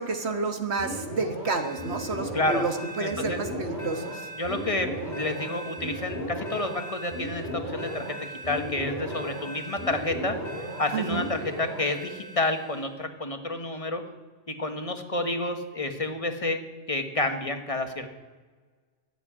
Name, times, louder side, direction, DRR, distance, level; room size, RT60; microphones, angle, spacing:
voice 1, 0.0-4.3 10.9-11.3, right 3 dB, 65° right, 6 dB, 1.8 m, -30 dB
sound 1, 0.8-12.9, right 1 dB, 15° left, 5.4 m, -36 dB
voice 2, 2.3-2.6 3.0-3.4 4.3-10.4 10.8-14.0 14.5-18.1, left 2 dB, 30° left, 6 dB, 1.4 m, -30 dB
14.5 x 7.7 x 9.8 m, 1.4 s
omnidirectional pair, 1.2 m